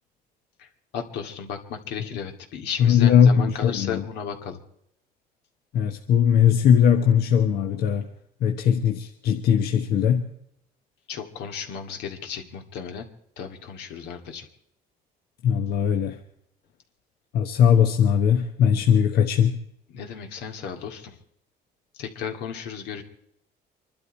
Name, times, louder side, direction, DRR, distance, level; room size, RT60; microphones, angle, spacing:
voice 1, 0.6-4.6 11.1-13.1 13.4-14.5 19.9-21.2 21.9-23.0, left 7 dB, 85° left, 2.2 m, -34 dB
voice 2, 2.8-4.0 5.7-8.1 8.4-10.3 15.4-16.2 17.3-19.6, left 8 dB, 70° left, 1.2 m, -19 dB
25.5 x 12.0 x 4.4 m
cardioid pair, 110°, 17 cm